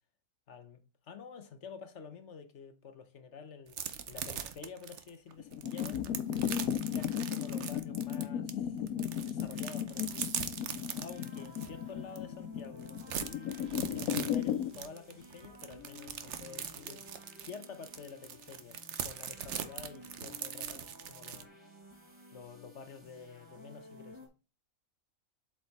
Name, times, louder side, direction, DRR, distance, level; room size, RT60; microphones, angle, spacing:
voice 1, 0.5-3.8 4.1-6.1 6.8-8.8 9.2-10.5 11.0-13.6 13.9-21.5 22.3-24.2, left 6 dB, 55° left, 1.3 m, -49 dB
sound 1, 3.7-8.5 8.9-11.7 12.2-12.3 12.6-21.4, right 8 dB, 60° right, 1.0 m, -41 dB
sound 2, 5.4-14.7, left 10 dB, 90° left, 1.1 m, -35 dB
sound 3, 9.9-24.3, left 2 dB, 20° right, 4.1 m, -54 dB
8.0 x 5.0 x 4.2 m
omnidirectional pair, 1.5 m